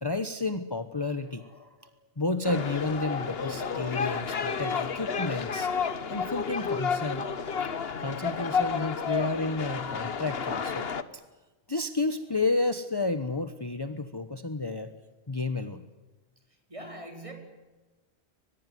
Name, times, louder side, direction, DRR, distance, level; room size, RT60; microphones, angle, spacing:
voice 1, 0.0-1.7 2.2-5.7 6.1-7.3 8.0-11.2 11.7-14.9 15.3-15.8, left 3 dB, 20° left, 10 dB, 1.2 m, -31 dB
sound 1, 2.4-11.0, left 6 dB, 65° left, 1.4 m, -31 dB
voice 2, 16.7-17.3, right 1 dB, 30° right, 4 dB, 4.8 m, -41 dB
23.0 x 21.5 x 9.4 m, 1.2 s
omnidirectional pair, 1.1 m